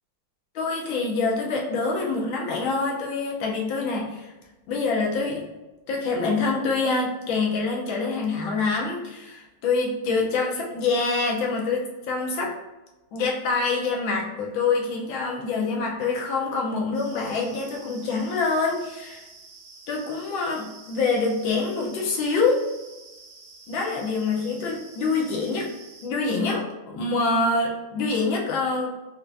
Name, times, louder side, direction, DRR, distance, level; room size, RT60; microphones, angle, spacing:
voice 1, 0.5-4.3 4.7-5.4 5.9-12.6 13.1-19.2 19.9-22.7 23.7-25.7 26.0-28.9, left 3 dB, 80° left, -1 dB, 1.4 m, -25 dB
sound 1, 16.9-26.1, right 3 dB, 60° right, 1.7 m, -48 dB
4.4 x 2.4 x 2.4 m, 1.1 s
omnidirectional pair, 2.2 m